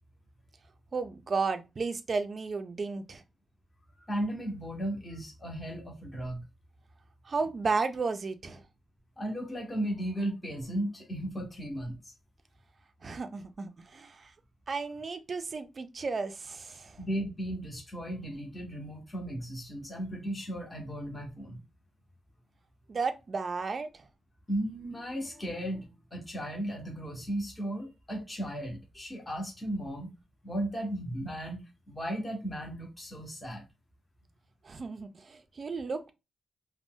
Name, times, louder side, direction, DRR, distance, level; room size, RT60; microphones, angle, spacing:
voice 1, 0.9-3.2 7.3-8.6 13.0-14.2 14.7-16.9 22.9-23.9 34.7-36.1, right 4 dB, 35° right, 0.4 m, -33 dB
voice 2, 4.0-6.4 9.2-12.1 17.0-21.6 24.5-30.1 30.4-31.6 31.9-33.7, right 1 dB, 10° left, 0.7 m, -35 dB
2.5 x 2.0 x 3.5 m
wide cardioid pair, 145°, 0 cm